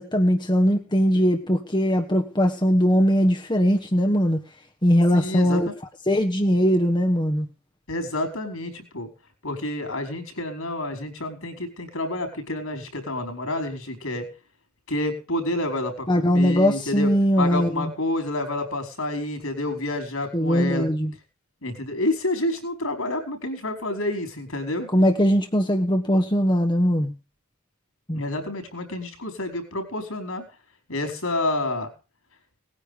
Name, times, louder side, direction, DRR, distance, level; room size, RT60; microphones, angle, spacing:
voice 1, 0.0-4.4 4.8-5.7 6.1-7.5 16.1-17.9 20.3-21.1 24.9-27.1 28.1-28.2, equal, 20° left, 5 dB, 1.3 m, -20 dB
voice 2, 5.1-5.6 7.9-9.1 9.4-14.3 14.9-17.1 17.4-20.9 21.6-24.9 28.1-30.4 30.9-31.9, left 1 dB, 70° left, 7 dB, 4.8 m, -29 dB
19.5 x 9.8 x 5.1 m, 0.34 s
head